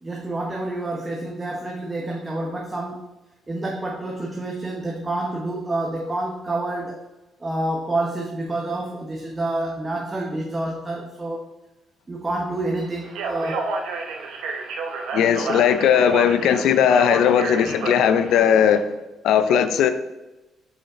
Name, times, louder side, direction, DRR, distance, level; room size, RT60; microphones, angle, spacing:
voice 1, 0.0-3.1 3.5-7.0 7.4-11.4 12.1-13.7, right 2 dB, 25° right, -1 dB, 0.9 m, -28 dB
Speech, 13.0-18.4, right 4 dB, 85° right, 0.8 m, -30 dB
voice 2, 15.1-18.9 19.2-19.9, left 8 dB, 85° left, 10 dB, 0.5 m, -18 dB
5.1 x 5.1 x 4.2 m, 1.0 s
cardioid pair, 90°, 0 cm